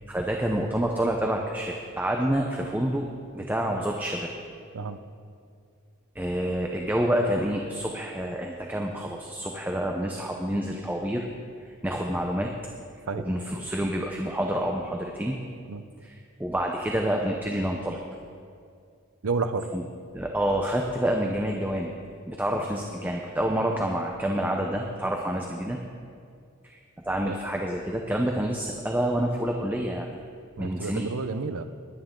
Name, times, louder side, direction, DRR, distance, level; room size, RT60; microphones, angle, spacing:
voice 1, 0.1-3.1 3.3-4.3 6.1-11.3 11.8-12.5 13.2-15.4 16.0-18.0 19.7-19.8 20.1-21.9 22.3-25.8 26.6-26.8 27.0-30.2 30.6-31.1, right 1 dB, 10° right, 1 dB, 0.7 m, -28 dB
voice 2, 19.2-19.7 27.2-27.4 30.6-31.6, right 4 dB, 90° right, 10 dB, 0.6 m, -30 dB
20.0 x 9.4 x 3.8 m, 2.3 s
head